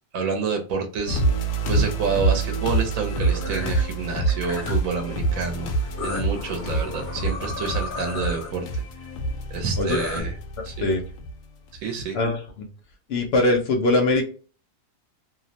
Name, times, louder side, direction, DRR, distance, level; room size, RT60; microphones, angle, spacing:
voice 1, 0.1-1.2 1.7-5.7 6.0-8.8 9.5-10.3 10.6-10.9 11.8-12.2, right 5 dB, 80° right, 4 dB, 1.1 m, -28 dB
sound 1, 1.1-11.3 11.7-11.8, right 2 dB, 90° left, 1.0 m, -26 dB
sound 2, 3.0-3.8 4.3-4.9 6.0-8.5 9.8-10.2, left 3 dB, 40° left, 1.1 m, -33 dB
voice 2, 9.7-10.3 10.6-11.0 12.1-12.7 13.1-14.2, left 2 dB, 60° left, 2 dB, 0.7 m, -22 dB
2.8 x 2.0 x 2.6 m, 0.38 s
omnidirectional pair, 1.4 m